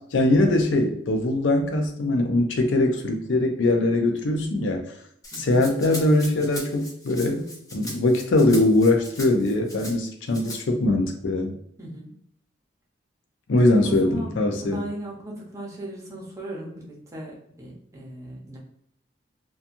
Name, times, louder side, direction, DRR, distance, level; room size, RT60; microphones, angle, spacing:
voice 1, 0.1-4.8 5.4-11.5 13.5-14.8, left 2 dB, 70° left, 4 dB, 0.5 m, -22 dB
Rattle (instrument), 5.2-9.9 10.3-10.6, left 1 dB, 15° left, 0.5 m, -39 dB
voice 2, 5.3-5.6 11.8-12.1 13.6-18.6, right 1 dB, 15° right, -4 dB, 0.7 m, -37 dB
2.8 x 2.3 x 2.5 m, 0.69 s
head